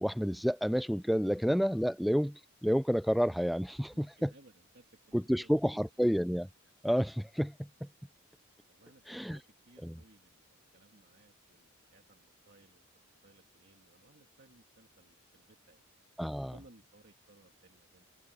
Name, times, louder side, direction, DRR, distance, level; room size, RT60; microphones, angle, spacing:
voice 1, 0.0-2.3 2.6-4.3 5.1-6.5 6.8-7.5 7.8-7.9 9.1-9.4 9.8-9.9 16.2-16.5, equal, ahead, 0.3 m, -29 dB
voice 2, 3.8-5.8 8.7-12.8 13.2-15.8 16.4-18.0, right 2 dB, 50° right, 2.3 m, -62 dB
head